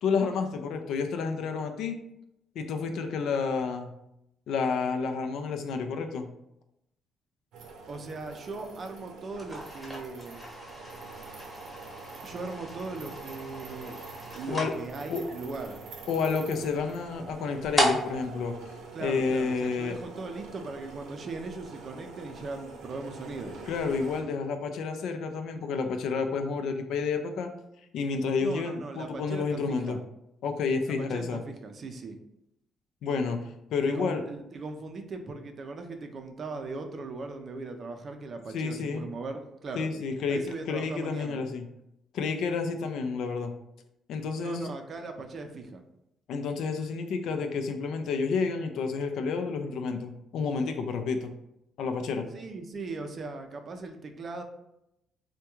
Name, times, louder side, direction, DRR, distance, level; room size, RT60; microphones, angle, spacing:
voice 1, 0.0-2.0 2.6-3.9 4.5-6.3 14.5-14.7 15.1-15.2 16.1-18.5 19.0-20.0 23.7-27.5 27.9-30.0 30.4-31.4 33.0-33.4 33.7-34.2 38.5-39.0 39.8-40.4 40.7-41.6 42.1-43.5 44.1-44.7 46.3-51.3 51.8-52.3, left 5 dB, 75° left, 6 dB, 0.4 m, -30 dB
sound 1, 7.5-24.2, right 4 dB, 85° right, 0.6 m, -46 dB
voice 2, 7.9-10.4 12.2-14.0 14.3-15.8 18.9-23.5 28.4-30.0 30.9-32.2 33.9-39.9 40.3-41.4 44.4-45.8 52.3-54.4, right 3 dB, 45° right, 6 dB, 0.4 m, -39 dB
sound 2, 9.3-19.7, right 1 dB, 10° left, 0.9 m, -36 dB
3.4 x 2.2 x 2.9 m, 0.83 s
cardioid pair, 115°, 0 cm